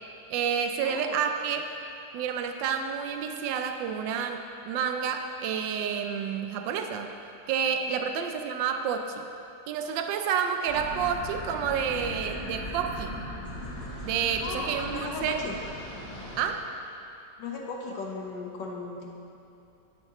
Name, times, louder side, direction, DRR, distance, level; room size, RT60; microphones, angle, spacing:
voice 1, 0.3-1.6 2.1-4.4 4.7-7.1 7.5-9.2 9.7-13.1 14.0-15.4 16.4-16.7, right 7 dB, 85° right, 6 dB, 1.3 m, -29 dB
sound 1, 10.7-16.5, left 1 dB, 30° left, 1.5 m, -38 dB
voice 2, 14.4-15.6 17.4-19.1, left 3 dB, 75° left, 0 dB, 1.8 m, -36 dB
11.0 x 10.5 x 3.0 m, 2.7 s
omnidirectional pair, 2.0 m